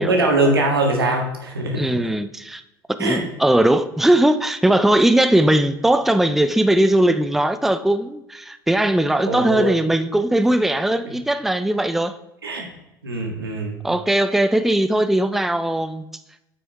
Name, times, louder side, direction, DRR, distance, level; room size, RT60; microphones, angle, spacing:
voice 1, 0.0-2.0 3.0-3.3 9.2-9.7 12.4-12.7 13.0-13.8, right 2 dB, 90° right, 1.7 m, -22 dB
voice 2, 1.8-2.6 2.9-12.2 13.8-16.0, right 1 dB, ahead, 0.5 m, -19 dB
8.4 x 6.1 x 3.4 m
hypercardioid pair, 75°, 12 cm